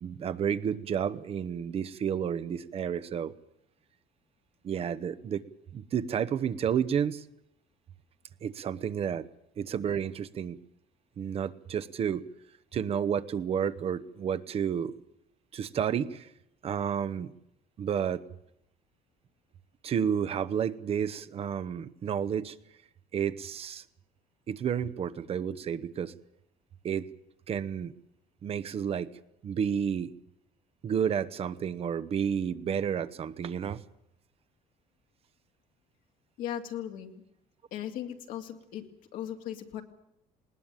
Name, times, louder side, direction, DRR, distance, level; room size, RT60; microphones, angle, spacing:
voice 1, 0.0-3.3 4.6-5.4 5.7-7.3 8.4-9.3 9.6-10.6 11.2-12.2 12.7-15.0 15.5-16.3 16.6-17.3 17.8-18.2 19.8-22.6 23.1-23.8 24.5-26.1 26.8-27.1 27.5-27.9 28.4-29.1 29.4-30.1 30.8-33.8, right 8 dB, 45° right, 13 dB, 1.0 m, -31 dB
voice 2, 36.4-37.2 37.7-38.8 39.1-39.8, left 10 dB, 75° left, 5 dB, 2.5 m, -37 dB
20.0 x 18.5 x 9.1 m, 0.77 s
cardioid pair, 110°, 14 cm